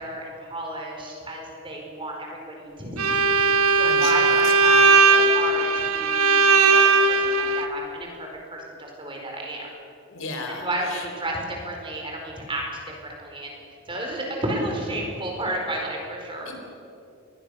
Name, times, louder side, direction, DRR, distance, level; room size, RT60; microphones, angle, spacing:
voice 1, 0.0-6.8 7.0-9.7 10.5-13.5 13.9-16.5, right 1 dB, 25° right, 0 dB, 4.7 m, -32 dB
Bowed string instrument, 3.0-7.7, right 3 dB, 75° right, 1.4 m, -18 dB
voice 2, 3.8-4.9 10.1-11.0 16.4-16.5, left 3 dB, 60° left, 3 dB, 4.2 m, -35 dB
25.5 x 21.0 x 6.6 m, 2.6 s
head